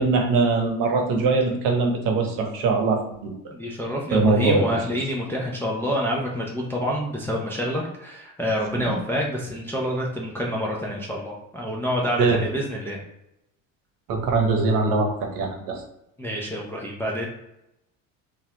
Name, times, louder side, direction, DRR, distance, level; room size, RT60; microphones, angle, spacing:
voice 1, 0.0-3.3 4.1-4.7 8.7-8.8 12.2-12.4 14.1-15.8, right 3 dB, 60° right, 2 dB, 0.9 m, -22 dB
voice 2, 3.5-13.0 16.2-17.3, equal, 5° left, -3 dB, 0.3 m, -27 dB
2.7 x 2.4 x 3.2 m, 0.86 s
supercardioid pair, 115°, 38 cm